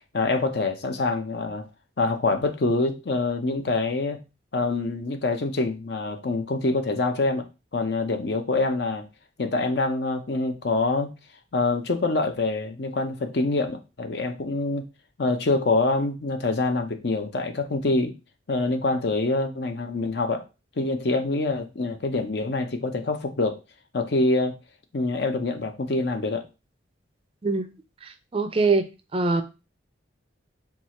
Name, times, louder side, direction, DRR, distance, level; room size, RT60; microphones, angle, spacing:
voice 1, 0.1-1.7 2.0-4.2 4.5-7.5 7.7-9.1 9.4-11.1 11.5-14.8 15.2-18.2 18.5-20.4 20.8-23.6 23.9-24.6 24.9-26.5, left 3 dB, 60° left, 0.6 m, -25 dB
voice 2, 28.0-28.8 29.1-29.4, right 3 dB, 30° right, 0.4 m, -23 dB
4.5 x 2.4 x 4.2 m
head